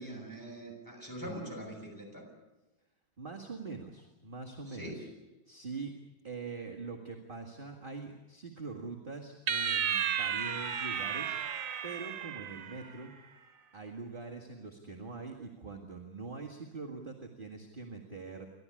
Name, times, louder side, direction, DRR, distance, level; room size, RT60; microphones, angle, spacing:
voice 1, 0.0-2.2 4.6-5.1, right 1 dB, 10° left, 0 dB, 6.8 m, -43 dB
voice 2, 3.2-5.1 5.5-5.9 6.2-11.4 11.8-13.1 13.7-18.4, right 4 dB, 25° right, 1 dB, 2.1 m, -43 dB
sound 1, 9.5-13.0, right 8 dB, 75° right, 1.9 m, -33 dB
30.0 x 13.0 x 9.9 m, 1.1 s
omnidirectional pair, 2.1 m